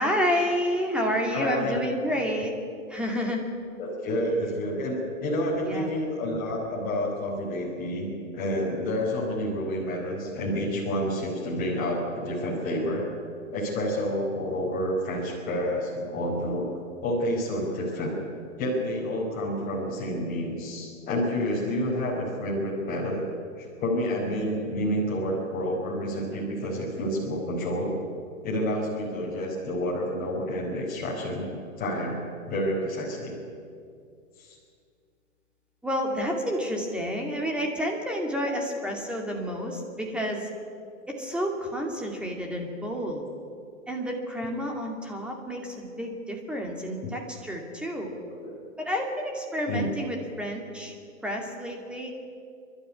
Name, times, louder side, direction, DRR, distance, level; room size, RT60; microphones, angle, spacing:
voice 1, 0.0-2.5 2.9-3.4 5.5-6.0 35.8-40.5 41.1-43.3 43.9-48.1 48.8-51.0 51.2-52.1, equal, ahead, 1 dB, 2.4 m, -30 dB
voice 2, 1.3-1.8 3.8-13.0 13.5-16.7 17.0-18.2 18.6-23.2 23.6-27.9 28.4-31.5 31.8-33.3 34.4-34.6 47.0-47.1 48.3-48.5 49.7-49.9, equal, 20° left, -4 dB, 4.7 m, -29 dB
29.5 x 12.0 x 9.7 m, 2.3 s
hypercardioid pair, 155°, 40 cm